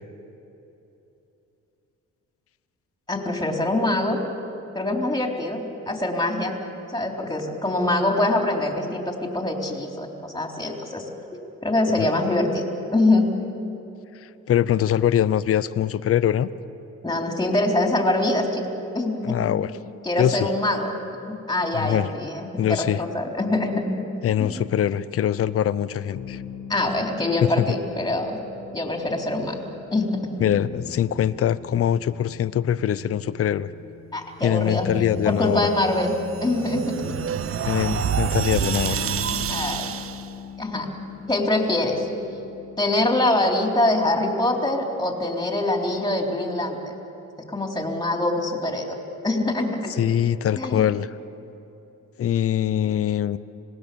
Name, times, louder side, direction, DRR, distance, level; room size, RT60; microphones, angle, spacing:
voice 1, 3.1-4.2 4.7-6.5 6.9-11.1 11.6-12.6 12.9-13.3 17.0-18.7 18.9-19.5 20.0-20.9 21.2-24.0 24.4-24.7 26.7-28.4 28.7-29.6 29.9-30.4 34.1-34.9 35.2-36.1 36.4-37.2 39.5-39.9 40.6-40.9 41.3-42.1 42.8-46.9 47.4-49.0 49.2-50.0 50.6-50.9, left 2 dB, 15° left, 1 dB, 3.8 m, -24 dB
voice 2, 14.5-16.5 19.2-19.7 20.2-20.5 21.7-22.1 22.6-23.0 24.2-26.4 27.4-27.8 30.4-33.7 34.4-35.6 37.6-39.0 50.0-51.1 52.2-53.4, left 10 dB, 50° left, 15 dB, 0.7 m, -23 dB
sound 1, 26.1-43.1, left 7 dB, 80° left, 1.7 m, -40 dB
sound 2, 35.8-40.3, right 8 dB, 45° right, 0.8 m, -27 dB
26.0 x 19.5 x 7.0 m, 3.0 s
cardioid pair, 90°, 30 cm